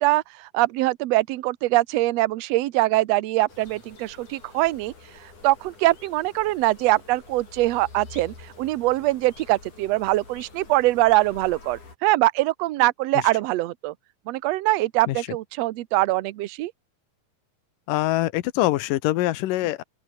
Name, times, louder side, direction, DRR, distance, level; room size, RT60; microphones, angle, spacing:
voice 1, 0.0-4.9 5.4-13.9 14.3-16.7, right 18 dB, 70° right, 1.7 m, -23 dB
sound 1, 3.5-12.0, left 4 dB, 65° left, 8.1 m, -47 dB
voice 2, 17.9-19.8, left 16 dB, 85° left, 2.6 m, -24 dB
open air
omnidirectional pair, 3.8 m